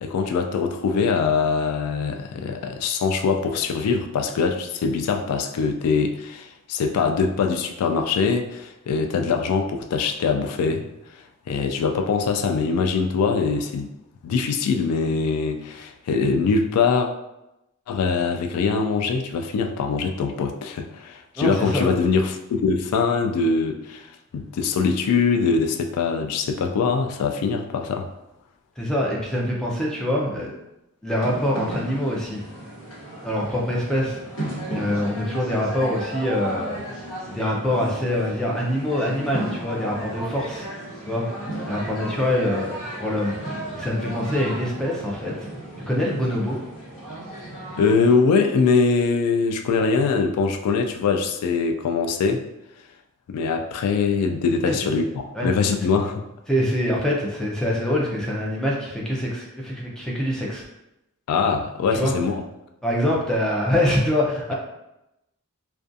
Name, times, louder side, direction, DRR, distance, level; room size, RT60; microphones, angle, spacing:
voice 1, 0.0-10.8 11.5-13.9 14.2-17.1 17.9-24.1 24.3-28.1 47.8-52.4 53.3-56.3 61.3-62.4, left 5 dB, 90° left, 10 dB, 0.3 m, -23 dB
voice 2, 21.4-21.9 28.8-30.5 31.0-32.4 33.2-34.2 34.7-36.8 37.3-40.7 41.1-41.3 41.7-45.5 45.9-46.6 54.6-54.8 55.3-55.5 55.8-55.9 56.5-60.6 61.9-62.1 62.8-64.5, left 1 dB, 5° left, -3 dB, 0.4 m, -24 dB
sound 1, 31.1-48.2, right 1 dB, 60° left, 1.0 m, -34 dB
2.4 x 2.2 x 2.5 m, 0.90 s
head